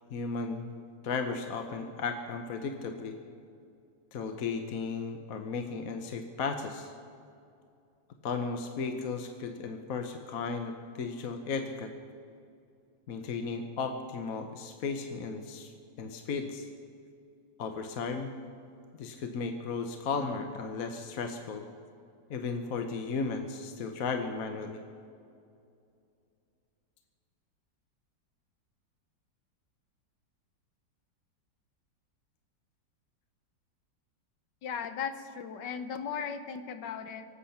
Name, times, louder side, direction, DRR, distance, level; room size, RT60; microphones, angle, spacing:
voice 1, 0.1-0.7 1.0-3.2 4.1-6.9 8.2-11.9 13.1-15.7 16.0-16.7 17.6-18.3 19.0-21.6 22.3-24.8, left 4 dB, 60° left, 6 dB, 1.2 m, -35 dB
voice 2, 34.6-37.3, left 7 dB, 80° left, 9 dB, 1.6 m, -37 dB
24.0 x 8.5 x 5.8 m, 2.5 s
omnidirectional pair, 1.9 m